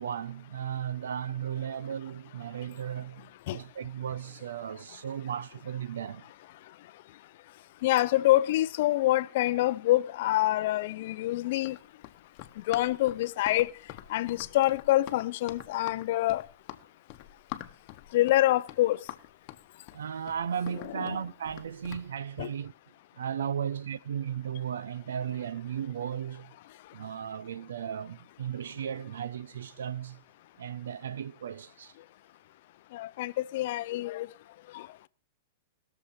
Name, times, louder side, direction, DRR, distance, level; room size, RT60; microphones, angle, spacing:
voice 1, 0.0-6.2 19.9-22.7 23.2-26.5 26.9-30.2 30.6-31.9, right 8 dB, 90° right, 0.6 m, -35 dB
voice 2, 7.8-11.8 12.7-13.7 14.1-16.5 18.1-19.0 20.8-21.2 22.4-22.5 32.9-34.3 34.7-35.1, left 15 dB, 50° left, 0.5 m, -26 dB
Run, 11.6-22.1, left 15 dB, 35° left, 1.0 m, -45 dB
20.5 x 7.0 x 4.2 m
hypercardioid pair, 155°, 0 cm